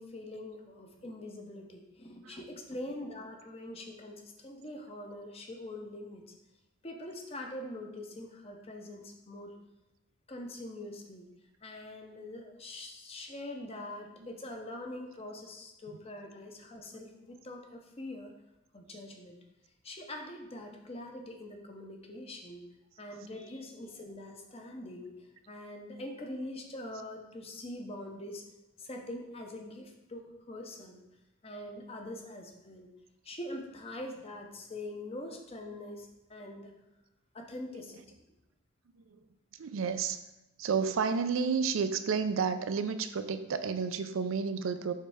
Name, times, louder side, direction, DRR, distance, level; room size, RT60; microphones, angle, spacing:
voice 1, 0.0-6.2 6.8-9.6 10.3-11.3 11.6-18.3 18.7-19.4 19.8-22.7 23.0-28.4 28.8-31.0 31.4-32.9 33.2-36.7 37.3-38.0, left 1 dB, 30° left, 2 dB, 0.7 m, -43 dB
voice 2, 39.5-40.2 40.6-44.9, right 5 dB, 75° right, 10 dB, 0.4 m, -31 dB
6.6 x 3.3 x 4.8 m, 0.95 s
head